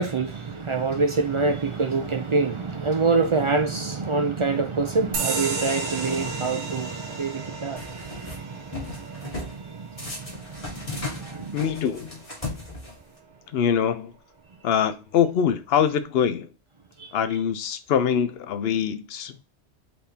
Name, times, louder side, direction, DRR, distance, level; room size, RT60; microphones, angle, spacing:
voice 1, 0.0-11.6 17.0-17.1, right 4 dB, 55° right, 0.3 m, -26 dB
sound 1, 5.1-12.2, right 3 dB, 85° right, 1.0 m, -35 dB
sound 2, 7.8-8.4 8.7-9.6 10.0-13.2, left 3 dB, 30° left, 1.6 m, -36 dB
voice 2, 11.5-12.2 13.5-14.1 14.6-16.5 17.1-19.4, left 8 dB, 65° left, 0.8 m, -24 dB
4.2 x 3.5 x 2.7 m
omnidirectional pair, 1.2 m